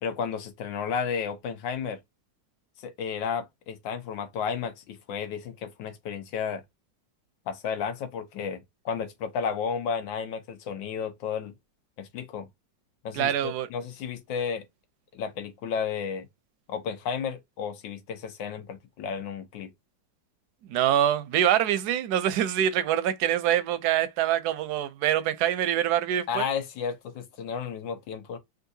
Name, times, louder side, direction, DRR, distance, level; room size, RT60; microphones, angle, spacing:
voice 1, 0.0-2.0 2.8-6.6 7.5-11.5 12.0-12.5 13.0-14.6 15.1-16.3 16.7-19.7 26.3-28.4, left 6 dB, 90° left, 1.5 m, -32 dB
voice 2, 13.1-13.7 20.7-26.4, right 11 dB, 70° right, 1.0 m, -25 dB
3.7 x 2.6 x 2.6 m
omnidirectional pair, 2.0 m